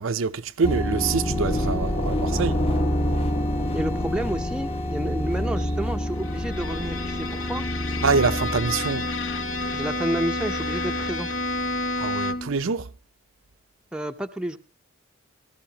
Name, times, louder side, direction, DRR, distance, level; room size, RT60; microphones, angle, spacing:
voice 1, 0.0-2.6 8.0-9.1 12.0-12.9, right 5 dB, 65° right, 0.6 m, -25 dB
sound 1, 0.6-12.3, left 1 dB, 25° left, 1.0 m, -29 dB
sound 2, 1.2-5.1, left 1 dB, 45° left, 1.4 m, -30 dB
voice 2, 3.7-7.6 9.7-11.3 13.9-14.6, right 1 dB, 5° right, 0.6 m, -30 dB
Bowed string instrument, 6.2-12.6, left 2 dB, 60° left, 0.9 m, -30 dB
19.0 x 14.0 x 2.9 m
head